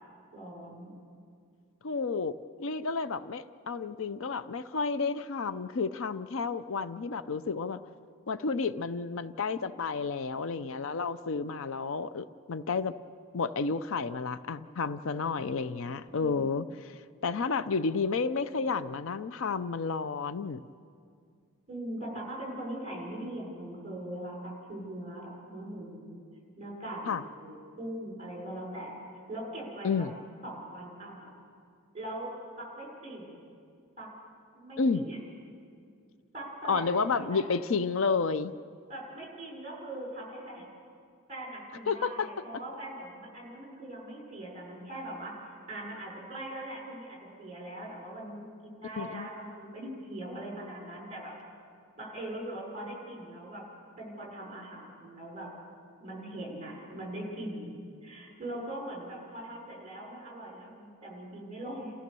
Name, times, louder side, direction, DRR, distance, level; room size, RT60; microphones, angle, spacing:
voice 1, 0.3-0.9 16.1-16.4 21.7-26.2 26.6-29.0 29.3-29.9 30.4-31.3 31.9-32.3 32.6-33.4 34.0-34.1 34.5-35.2 36.3-37.4 38.9-40.7 41.3-51.3 52.0-53.6 54.0-55.5 56.0-57.7 58.0-61.9, right 1 dB, 30° right, -1 dB, 5.6 m, -41 dB
voice 2, 1.8-7.8 8.3-12.9 13.3-20.6 27.1-27.2 29.8-30.1 34.8-35.0 36.7-38.5 41.9-42.3 49.0-49.3, left 4 dB, 60° left, 13 dB, 0.5 m, -31 dB
30.0 x 15.0 x 6.9 m, 2.3 s
head